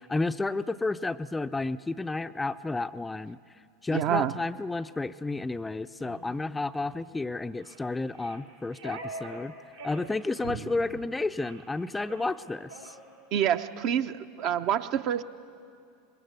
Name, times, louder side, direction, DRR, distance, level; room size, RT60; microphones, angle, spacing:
voice 1, 0.1-3.4 3.8-9.5 9.8-13.0, left 3 dB, 10° left, 11 dB, 0.5 m, -31 dB
voice 2, 3.9-4.3 13.3-15.2, right 10 dB, 50° right, 9 dB, 0.9 m, -27 dB
sound 1, 6.0-6.2 6.7-6.9 7.6-7.8 8.1-9.4 9.7-10.1 10.3-10.6 10.9-11.1 11.4-11.7 12.0-12.3 12.7-13.0, right 4 dB, 75° right, 3.9 m, -42 dB
25.0 x 20.5 x 8.2 m, 2.3 s
figure-of-eight pair, 85°, 0 cm